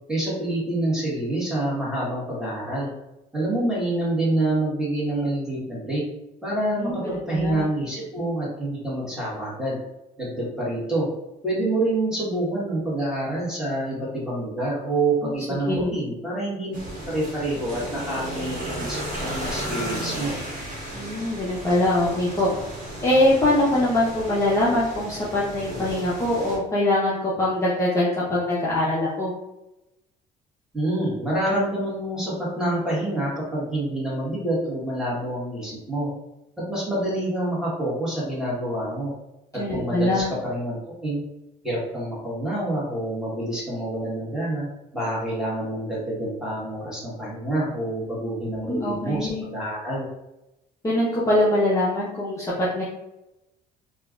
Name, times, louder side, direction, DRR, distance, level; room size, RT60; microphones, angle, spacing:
voice 1, 0.1-2.9 3.3-6.0 6.4-9.8 10.2-11.1 11.4-16.7 17.1-20.3 30.7-36.1 36.7-39.1 39.7-41.2 41.6-44.7 44.9-50.1, right 1 dB, 5° right, -7 dB, 1.4 m, -27 dB
voice 2, 6.7-7.7 15.2-15.3 15.7-15.9 20.9-22.5 23.0-29.3 39.6-40.3 48.5-49.5 50.8-52.8, left 1 dB, 20° left, -8 dB, 0.7 m, -23 dB
sound 1, 16.7-26.6, right 1 dB, 50° right, 1.2 m, -34 dB
3.2 x 2.3 x 2.4 m, 0.92 s
cardioid pair, 110°, 17 cm